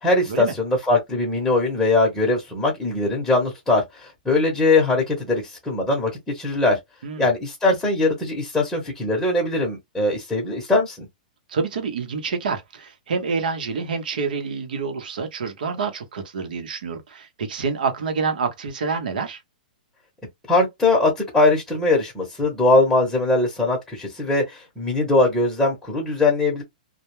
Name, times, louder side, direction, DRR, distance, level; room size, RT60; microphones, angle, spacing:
voice 1, 0.0-6.8 7.2-11.1 20.5-26.6, left 2 dB, 5° left, 0.9 m, -21 dB
voice 2, 11.5-19.4, right 5 dB, 75° right, 0.8 m, -27 dB
2.2 x 2.1 x 3.0 m
hypercardioid pair, 145°, 5 cm